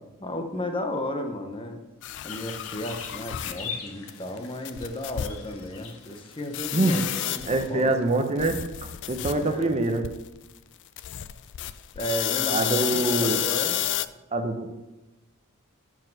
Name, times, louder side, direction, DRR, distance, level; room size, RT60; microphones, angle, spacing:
voice 1, 0.0-1.8 2.2-7.0 7.3-8.0 9.4-9.8 12.0-13.8, left 1 dB, 25° left, 5 dB, 0.6 m, -33 dB
sound 1, 2.0-3.7 4.1-4.2 4.4-4.5 4.6-5.4 5.7-5.8 6.5-7.8 8.1-9.6 10.0-10.2 11.0-14.1, left 12 dB, 55° left, 0.3 m, -30 dB
sound 2, 2.3-7.3, left 5 dB, 70° left, 0.9 m, -42 dB
voice 2, 7.5-10.1 12.5-13.4 14.3-14.8, right 2 dB, 30° right, 5 dB, 0.6 m, -25 dB
5.9 x 4.7 x 6.4 m, 1.0 s
head